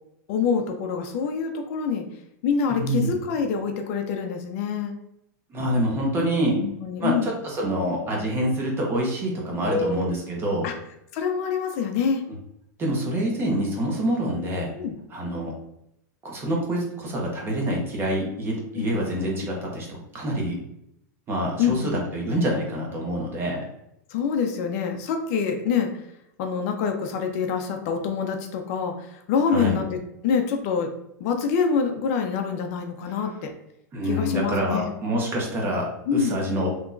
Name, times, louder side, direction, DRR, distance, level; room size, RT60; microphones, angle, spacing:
voice 1, 0.3-2.0 2.4-4.9 6.6-7.3 9.6-10.1 10.6-10.7 11.1-12.2 14.8-14.9 18.7-18.9 21.6-22.0 24.1-26.0 26.4-30.9 31.2-33.5 34.0-34.9 36.1-36.4, left 6 dB, 55° left, 5 dB, 0.5 m, -26 dB
voice 2, 2.7-3.1 5.5-6.6 7.0-10.6 12.8-14.7 15.1-15.5 16.2-19.9 20.1-20.6 21.3-23.6 29.5-29.8 33.9-36.7, right 1 dB, 25° right, -2 dB, 1.0 m, -26 dB
3.4 x 2.9 x 2.5 m, 0.80 s
supercardioid pair, 130°, 10 cm